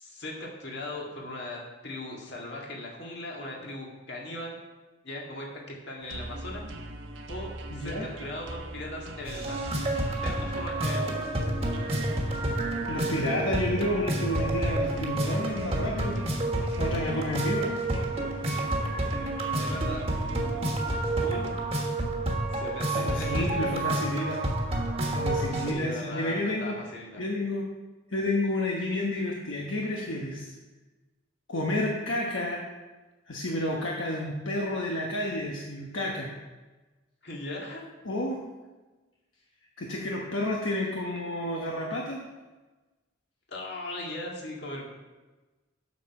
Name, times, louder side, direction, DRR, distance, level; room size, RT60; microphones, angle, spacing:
voice 1, 0.0-4.6 5.0-6.6 7.3-9.6 10.1-11.2 19.6-20.0 21.2-21.5 22.5-23.8 25.7-27.2 37.2-37.8 43.5-44.9, left 1 dB, 55° left, -2 dB, 2.0 m, -39 dB
sound 1, 6.0-21.7, right 1 dB, 75° right, 1.1 m, -42 dB
voice 2, 7.7-8.1 12.9-16.2 16.8-17.7 22.9-24.4 25.1-26.8 27.2-27.7 28.1-30.5 31.5-32.6 33.3-36.3 38.0-38.4 39.8-42.2, left 1 dB, 75° left, -2 dB, 1.1 m, -30 dB
sound 2, 9.3-25.7, right 1 dB, 30° right, 1.4 m, -29 dB
8.2 x 6.6 x 5.8 m, 1.2 s
head